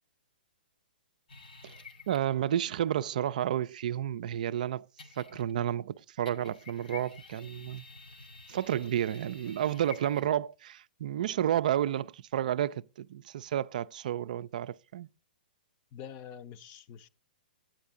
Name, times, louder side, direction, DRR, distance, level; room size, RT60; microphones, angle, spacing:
sound 1, 1.3-2.4 5.0-5.7 6.3-10.4, left 4 dB, 80° left, 1.8 m, -50 dB
voice 1, 2.1-4.9 5.2-7.8 8.5-15.1, right 11 dB, 60° right, 0.4 m, -31 dB
voice 2, 15.9-17.1, left 9 dB, 35° left, 0.6 m, -46 dB
9.0 x 8.6 x 3.6 m
hypercardioid pair, 125°, 5 cm